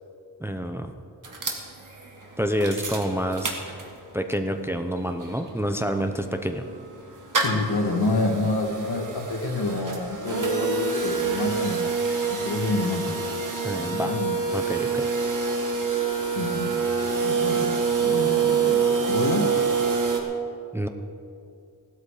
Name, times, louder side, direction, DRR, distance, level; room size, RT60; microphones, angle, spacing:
voice 1, 0.4-0.9 2.4-3.6 4.1-6.7 13.6-14.1 14.5-15.1 20.7-20.9, equal, 5° right, 6 dB, 0.6 m, -28 dB
sound 1, 1.2-4.2 4.6-4.7 4.9-20.2, right 5 dB, 50° right, 1.8 m, -27 dB
voice 2, 7.4-11.8 12.3-13.1 13.9-14.4 16.4-16.7 17.2-19.5, left 2 dB, 75° left, 2 dB, 2.1 m, -27 dB
16.5 x 12.5 x 5.0 m, 2.4 s
wide cardioid pair, 155°, 39 cm